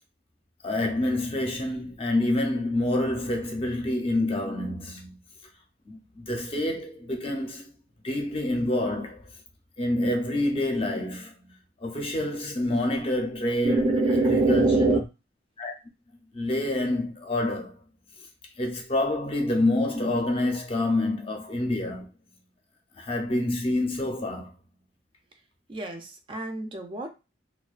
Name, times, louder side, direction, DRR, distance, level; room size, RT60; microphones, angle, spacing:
voice 1, 0.6-5.2 5.9-7.7 8.0-9.2 9.8-11.3 11.8-15.0 15.6-15.7 16.3-17.7 18.6-22.1 23.0-24.5, left 1 dB, 30° left, 0.5 m, -27 dB
voice 2, 13.6-15.0 25.7-27.1, right 2 dB, 30° right, 0.3 m, -24 dB
2.5 x 2.2 x 2.3 m
head